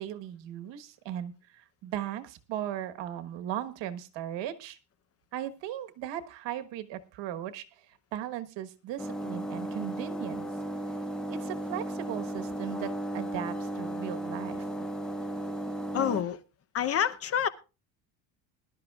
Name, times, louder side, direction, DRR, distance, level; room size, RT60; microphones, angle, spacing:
voice 1, 0.0-4.8 5.3-7.6 8.1-10.5 11.3-14.7, right 11 dB, 65° right, 1.3 m, -37 dB
sound 1, 9.0-16.2, right 1 dB, ahead, 0.5 m, -35 dB
voice 2, 15.9-16.4 16.7-17.5, left 9 dB, 30° left, 0.8 m, -27 dB
21.5 x 12.0 x 2.4 m
cardioid pair, 170°, 48 cm